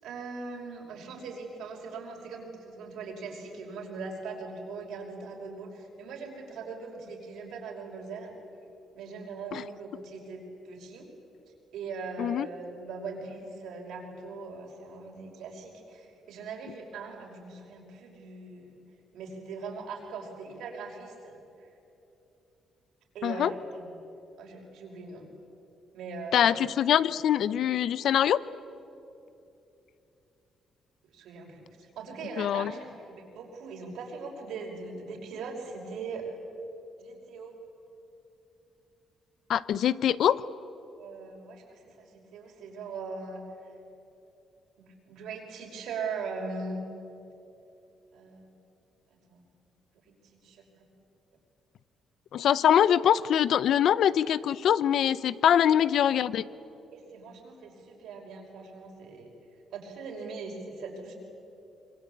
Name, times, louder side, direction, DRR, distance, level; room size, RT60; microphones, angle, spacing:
voice 1, 0.0-8.4 8.9-11.1 11.7-18.8 19.1-21.7 23.1-23.9 24.4-25.3 25.9-26.6 31.1-36.4 37.0-37.5 41.0-43.4 44.8-46.8 48.1-48.5 49.3-49.4 50.1-50.9 55.5-55.6 56.9-59.3 59.7-61.2, right 4 dB, 80° right, 1 dB, 5.5 m, -40 dB
voice 2, 23.2-23.5 26.3-28.4 32.4-32.7 39.5-40.4 52.3-56.4, left 10 dB, 70° left, 18 dB, 0.7 m, -23 dB
26.0 x 23.0 x 8.6 m, 2.9 s
cardioid pair, 90°, 0 cm